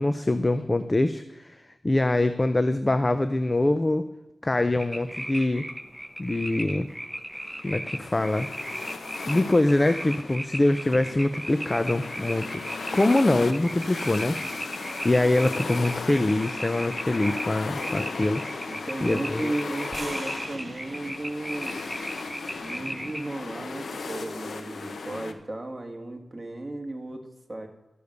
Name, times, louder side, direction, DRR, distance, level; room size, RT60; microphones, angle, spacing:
voice 1, 0.0-1.6 1.8-4.1 4.4-5.7 6.2-6.9 7.6-8.5 9.3-12.6 12.9-14.4 15.0-18.4 19.0-19.5, left 2 dB, 30° left, 11 dB, 0.5 m, -24 dB
sound 1, 4.8-23.4, equal, ahead, 0.9 m, -37 dB
sound 2, 7.3-25.3, left 4 dB, 90° left, 0.8 m, -37 dB
voice 2, 18.7-21.8 22.6-27.7, right 2 dB, 20° right, 2 dB, 1.7 m, -35 dB
sound 3, 19.9-24.1, right 3 dB, 55° right, 1.7 m, -46 dB
12.5 x 6.8 x 6.6 m, 1.0 s
wide cardioid pair, 75°, 0 cm